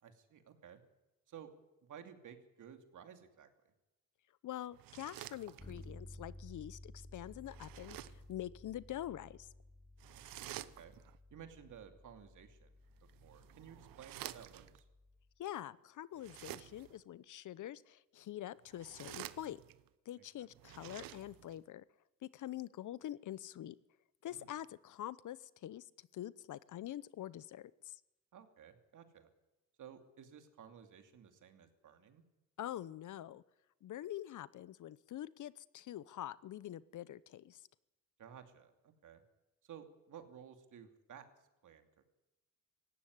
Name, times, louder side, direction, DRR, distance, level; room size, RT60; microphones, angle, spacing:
voice 1, 0.0-0.8 1.3-1.5 1.9-3.5 10.1-10.9 11.3-12.7 13.2-14.9 20.1-20.5 24.3-24.5 28.3-29.3 29.8-32.2 38.2-39.2 39.6-41.2 41.6-41.9, right 8 dB, 60° right, 6 dB, 2.7 m, -55 dB
voice 2, 4.4-9.5 15.4-19.6 20.1-21.8 22.2-23.8 24.2-25.9 26.1-28.0 32.6-33.4 33.8-37.6, left 12 dB, 60° left, 19 dB, 0.8 m, -45 dB
sound 1, 4.7-6.0 7.5-8.3 10.0-11.2 13.0-14.8 16.1-17.0 18.6-19.9 20.5-21.6, right 15 dB, 80° right, 0.9 m, -50 dB
Bass guitar, 5.6-15.3, left 1 dB, 15° left, 3.9 m, -56 dB
17.5 x 15.5 x 9.7 m, 0.98 s
cardioid pair, 80°, 34 cm